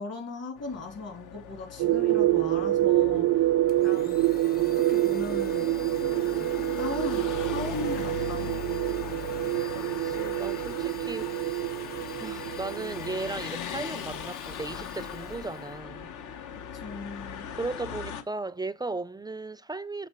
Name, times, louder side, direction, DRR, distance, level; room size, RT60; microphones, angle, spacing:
voice 1, 0.0-3.3 3.8-4.3 4.6-5.8 6.2-8.5 16.7-17.5, left 4 dB, 55° left, 2.6 m, -38 dB
sound 1, 0.6-18.2, left 7 dB, 75° left, 0.9 m, -39 dB
sound 2, 1.8-13.5, right 15 dB, 80° right, 0.5 m, -27 dB
Domestic sounds home sounds, 3.7-15.8, left 4 dB, 30° left, 0.7 m, -49 dB
voice 2, 9.7-11.6 12.2-16.2 17.5-20.1, right 3 dB, 15° right, 0.3 m, -36 dB
6.7 x 4.1 x 4.3 m
cardioid pair, 90°, 30 cm